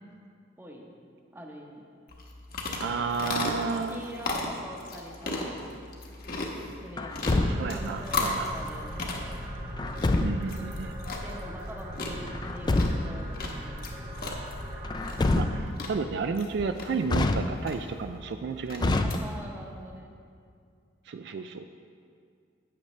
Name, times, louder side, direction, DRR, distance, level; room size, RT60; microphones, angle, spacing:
voice 1, 0.6-0.9 1.3-1.9 3.6-5.6 6.4-7.4 7.7-9.1 11.2-14.1 19.0-20.1, right 1 dB, 10° right, 0 dB, 0.9 m, -44 dB
sound 1, 2.1-19.2, left 2 dB, 50° left, 1.1 m, -36 dB
voice 2, 2.8-4.0 7.4-8.5 10.2-10.9 15.3-19.0 21.1-21.6, right 5 dB, 60° right, 8 dB, 0.3 m, -32 dB
Truck, 7.0-7.9 9.8-10.6 12.3-13.3 14.8-15.9 17.1-17.9 18.8-19.7, left 2 dB, 20° left, 0.3 m, -27 dB
sound 2, 7.3-15.6, equal, 40° right, 1.3 m, -39 dB
12.0 x 8.5 x 3.1 m, 2.3 s
head